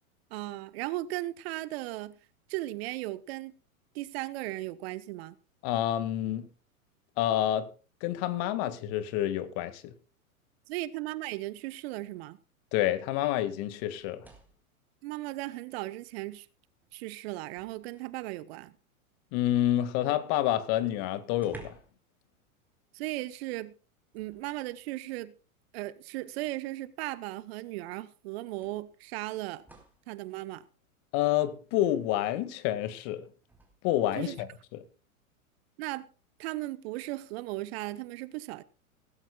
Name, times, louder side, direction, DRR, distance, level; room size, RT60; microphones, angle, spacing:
voice 1, 0.3-2.2 2.5-3.5 3.9-5.4 10.7-12.4 15.0-16.5 16.9-18.7 22.9-23.7 24.1-25.3 25.7-29.6 30.1-30.6 34.1-34.4 35.8-36.1 36.4-38.6, right 17 dB, 45° right, 1.1 m, -36 dB
voice 2, 5.6-6.5 7.2-7.7 8.0-9.9 12.7-14.3 19.3-21.8 31.1-33.3 33.8-34.5, left 13 dB, 40° left, 2.0 m, -28 dB
sound 1, 14.0-14.7 16.1-16.2 16.7-18.3 20.3-20.4 20.7-20.8 21.3-22.1 22.4-22.6 24.1-24.9 26.0-26.1 27.6-27.7 28.6-30.1 33.4-33.7, right 2 dB, 5° right, 4.3 m, -54 dB
18.0 x 16.0 x 2.4 m
hypercardioid pair, 105°, 42 cm